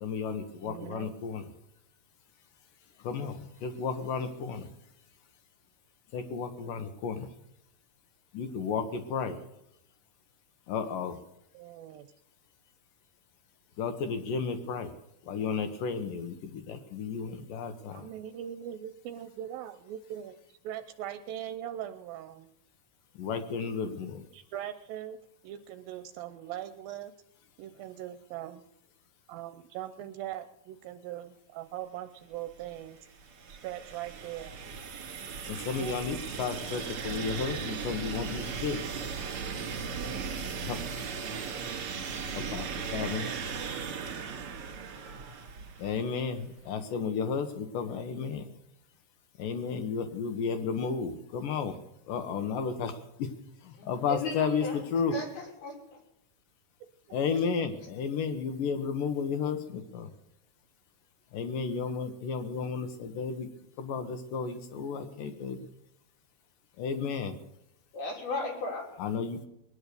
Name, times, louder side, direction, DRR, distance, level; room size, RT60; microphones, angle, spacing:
voice 1, 0.0-1.5 3.0-4.7 6.1-7.3 8.3-9.4 10.7-11.2 13.8-14.9 15.2-18.1 23.2-24.3 35.5-38.8 40.7-40.8 42.3-43.3 45.8-48.5 49.4-51.8 52.1-53.3 53.6-55.2 57.1-60.1 61.3-63.5 63.8-65.6 66.8-67.4 69.0-69.5, left 6 dB, 70° left, 8 dB, 2.6 m, -33 dB
voice 2, 0.7-1.1 11.5-12.1 17.9-22.5 24.3-27.1 27.6-28.6 29.3-33.0 33.6-34.6 35.8-36.2 57.3-57.4, right 11 dB, 80° right, 9 dB, 2.4 m, -41 dB
sound 1, 32.6-46.3, right 5 dB, 45° right, 2.9 m, -37 dB
voice 3, 53.8-54.8 55.1-56.0 67.9-69.0, left 2 dB, 85° left, -1 dB, 5.5 m, -36 dB
20.5 x 9.8 x 6.8 m, 0.81 s
omnidirectional pair, 4.3 m